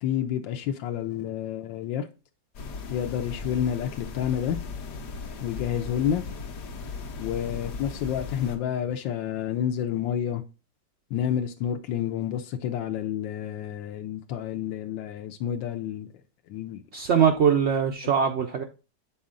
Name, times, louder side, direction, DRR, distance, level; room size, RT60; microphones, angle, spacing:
voice 1, 0.0-2.1 2.9-4.6 5.4-6.2 7.2-10.4 11.1-16.1 16.5-16.8, left 9 dB, 90° left, 1.4 m, -29 dB
sound 1, 2.5-8.6, left 4 dB, 60° left, 1.2 m, -37 dB
voice 2, 16.9-18.6, right 7 dB, 90° right, 0.5 m, -22 dB
7.0 x 4.2 x 3.7 m
omnidirectional pair, 2.0 m